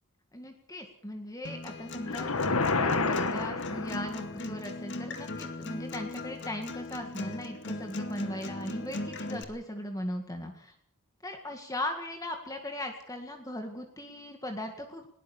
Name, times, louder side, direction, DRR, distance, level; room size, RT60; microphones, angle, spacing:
voice 1, 0.3-10.7 11.2-15.1, left 1 dB, 15° left, 4 dB, 1.9 m, -38 dB
Acoustic guitar, 1.4-9.4, left 2 dB, 55° left, 2.2 m, -38 dB
sound 1, 2.0-4.4, left 3 dB, 70° left, 1.5 m, -29 dB
20.5 x 18.5 x 7.2 m, 0.63 s
head